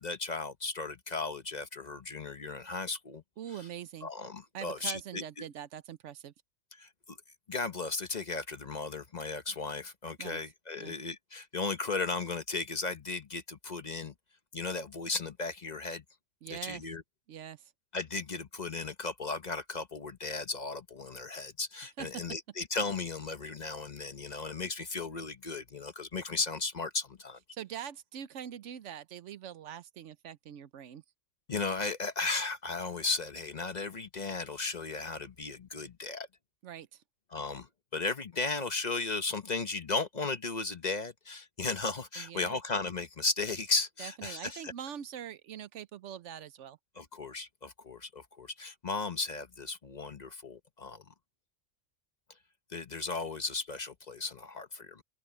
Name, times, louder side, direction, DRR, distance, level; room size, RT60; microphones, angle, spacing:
voice 1, 0.0-3.2 4.0-5.4 6.8-7.2 7.5-14.1 14.5-16.0 16.5-17.0 17.9-27.4 31.5-36.3 37.3-44.7 46.9-51.0 52.7-55.0, left 3 dB, 40° left, 0.9 m, -35 dB
voice 2, 3.4-4.1 4.5-6.3 10.2-10.4 10.8-10.9 16.4-16.8 17.3-17.7 22.0-22.2 27.5-31.0 36.6-37.0 42.2-42.6 44.0-46.8, right 9 dB, 75° right, 1.0 m, -43 dB
open air
omnidirectional pair, 1.3 m